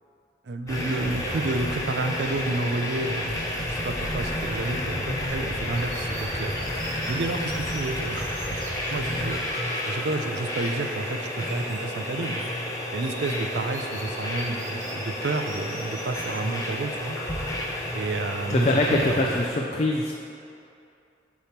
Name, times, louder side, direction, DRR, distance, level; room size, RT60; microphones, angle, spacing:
voice 1, 0.5-6.6 7.1-9.4 9.9-12.4 12.9-17.2 17.9-19.2, right 2 dB, 70° right, 6 dB, 0.5 m, -30 dB
sound 1, 0.7-19.5, left 1 dB, 20° left, 0.7 m, -31 dB
sound 2, 5.7-16.3, right 2 dB, 40° right, 0.9 m, -43 dB
voice 2, 18.5-20.1, left 2 dB, 35° left, -1 dB, 0.4 m, -23 dB
8.3 x 3.1 x 5.8 m, 2.6 s
head